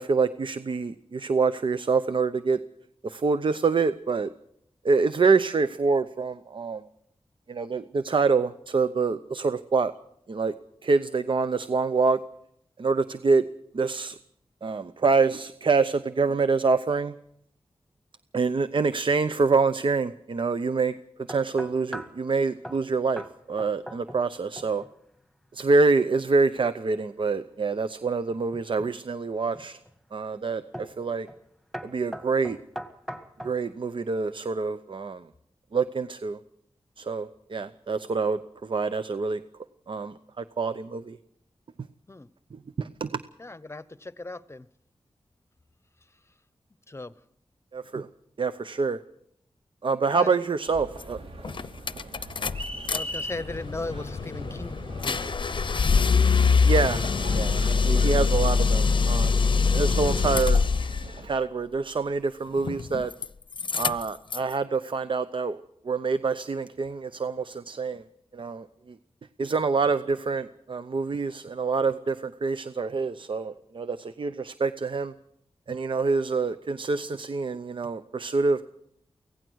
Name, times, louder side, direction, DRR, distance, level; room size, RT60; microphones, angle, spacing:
voice 1, 0.0-2.6 3.0-4.3 4.8-6.8 7.5-9.9 10.3-10.5 10.8-12.2 12.8-13.4 13.7-14.2 14.6-17.1 18.3-20.9 21.3-24.8 25.5-29.8 30.1-31.3 31.8-32.6 33.4-35.2 35.7-36.4 37.0-39.4 39.9-41.2 42.8-43.2 47.7-48.1 48.4-49.0 49.8-51.2 56.6-57.0 57.3-60.6 61.2-63.1 63.8-65.6 65.8-68.0 68.3-68.7 69.4-75.1 75.7-78.7, right 4 dB, 55° right, 12 dB, 0.7 m, -26 dB
sound 1, 21.3-22.2 22.6-22.8 23.2-23.3 23.6-24.3 24.6-24.9 28.3-28.9 29.5-29.9 30.7-31.0 31.3-31.5 31.7-33.6, equal, ahead, 2.0 m, -39 dB
voice 2, 43.4-44.7 46.9-47.1 50.2-50.4 52.7-55.3, left 2 dB, 25° left, 16 dB, 0.9 m, -38 dB
sound 2, 50.7-61.3, right 1 dB, 75° right, 3.6 m, -41 dB
sound 3, 51.0-51.1 51.4-53.0 53.3-61.1 62.6-63.3 63.5-64.5, left 5 dB, 55° left, 0.7 m, -24 dB
24.5 x 17.0 x 6.3 m, 0.73 s
wide cardioid pair, 90°, 10 cm